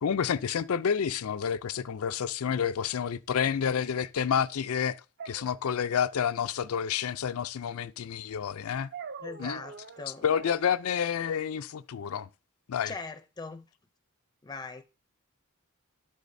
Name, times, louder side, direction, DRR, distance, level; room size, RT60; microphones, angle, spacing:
voice 1, 0.0-5.0 5.3-8.9 9.4-9.6 10.2-12.3 12.7-12.9, left 7 dB, 85° left, 0.4 m, -29 dB
sound 1, 3.4-3.6 5.2-6.1 8.9-10.6, right 5 dB, 50° right, 0.5 m, -43 dB
voice 2, 9.2-10.2 12.8-13.7 14.4-14.8, left 3 dB, 20° left, 0.4 m, -40 dB
11.5 x 8.3 x 2.6 m
head